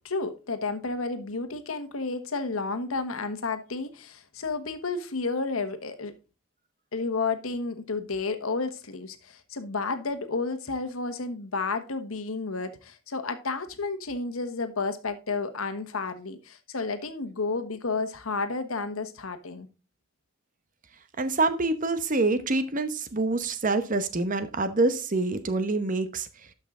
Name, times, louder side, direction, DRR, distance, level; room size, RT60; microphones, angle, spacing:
voice 1, 0.0-6.1 6.9-19.7, left 3 dB, 90° left, 1.2 m, -31 dB
voice 2, 21.2-26.3, right 3 dB, 40° right, 0.9 m, -26 dB
12.5 x 5.6 x 3.7 m
head